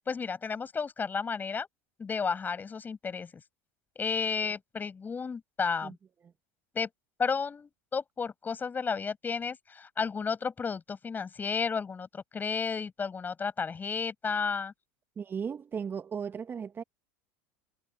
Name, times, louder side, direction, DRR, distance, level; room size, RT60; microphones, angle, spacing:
voice 1, 0.1-1.7 2.0-3.3 3.9-6.0 6.7-6.9 7.2-14.7, left 5 dB, 25° left, 6.5 m, -32 dB
voice 2, 15.2-16.8, right 6 dB, 30° right, 1.5 m, -36 dB
hypercardioid pair, 90°, 8 cm